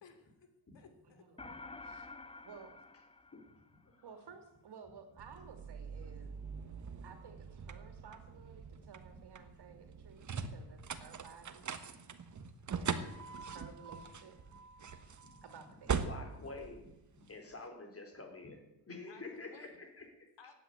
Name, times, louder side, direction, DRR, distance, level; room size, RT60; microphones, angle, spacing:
voice 1, 0.0-1.6 19.1-19.8 20.4-20.5, left 5 dB, 65° left, 7 dB, 3.0 m, -60 dB
voice 2, 1.0-2.1 2.4-2.8 4.0-6.3 7.0-11.7 12.7-13.2 13.5-14.4 15.4-16.0, right 6 dB, 60° right, 7 dB, 3.1 m, -55 dB
sound 1, 1.4-4.0, left 3 dB, 15° left, 0.7 m, -50 dB
sound 2, 5.2-17.5, right 6 dB, 40° right, 1.4 m, -42 dB
voice 3, 16.0-20.3, left 3 dB, 30° left, 4 dB, 3.8 m, -48 dB
15.5 x 9.3 x 9.9 m, 0.92 s
cardioid pair, 115°, 47 cm